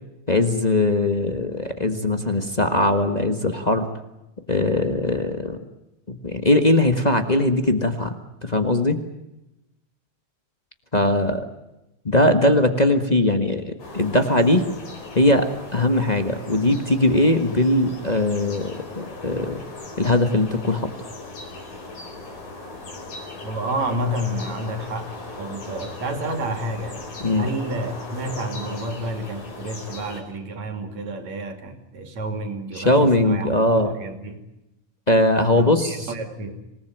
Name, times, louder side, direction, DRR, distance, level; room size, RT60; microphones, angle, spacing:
voice 1, 0.3-3.9 4.5-5.6 6.1-8.1 8.4-9.0 10.9-11.4 12.0-14.6 15.1-19.6 20.0-20.9 27.2-27.5 32.7-33.9 35.1-36.1, left 1 dB, 35° left, 6 dB, 0.6 m, -20 dB
sound 1, 13.8-30.2, left 2 dB, 75° left, 6.2 m, -38 dB
voice 2, 23.4-34.4 35.6-36.6, right 1 dB, 60° right, 7 dB, 3.9 m, -30 dB
27.0 x 19.0 x 9.1 m, 0.95 s
omnidirectional pair, 3.5 m